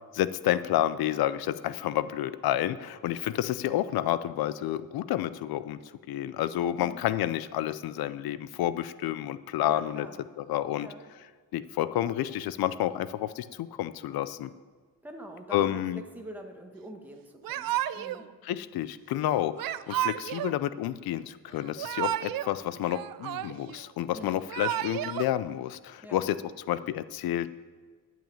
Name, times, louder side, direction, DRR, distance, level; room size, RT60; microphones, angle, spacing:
voice 1, 0.1-5.8 6.1-10.1 10.5-10.9 11.5-14.5 15.5-16.0 18.4-27.6, left 12 dB, 85° left, 15 dB, 0.5 m, -30 dB
voice 2, 9.6-10.2 10.7-11.0 15.0-18.3 24.1-24.4 26.0-26.3, right 1 dB, 5° right, 2 dB, 1.4 m, -45 dB
Yell / Crying sobbing, 17.4-18.2 19.6-20.6 21.6-22.5 22.8-23.8 24.3-25.3, right 13 dB, 70° right, 0.5 m, -32 dB
11.0 x 6.0 x 8.8 m, 1.5 s
cardioid pair, 125°, 36 cm